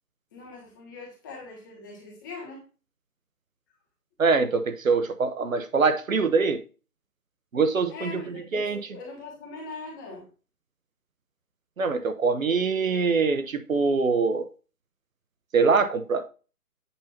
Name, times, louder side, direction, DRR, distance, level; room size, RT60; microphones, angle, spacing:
voice 1, 0.3-2.6 7.9-10.3, left 3 dB, 15° left, 1.1 m, -41 dB
voice 2, 4.2-6.6 7.5-8.8 11.8-14.5 15.5-16.3, right 4 dB, 60° right, 1.0 m, -24 dB
8.4 x 2.9 x 5.8 m
figure-of-eight pair, 155°, 46 cm